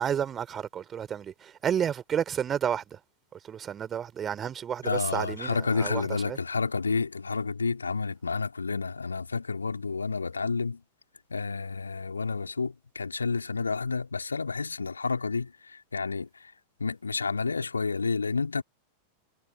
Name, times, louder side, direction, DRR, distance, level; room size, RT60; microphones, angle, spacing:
voice 1, 0.0-3.0 3.3-6.4, right 8 dB, 25° right, 3.9 m, -31 dB
voice 2, 4.8-10.8 11.3-16.5 16.8-18.6, left 4 dB, 75° left, 3.2 m, -30 dB
figure-of-eight pair, 90°, 0 cm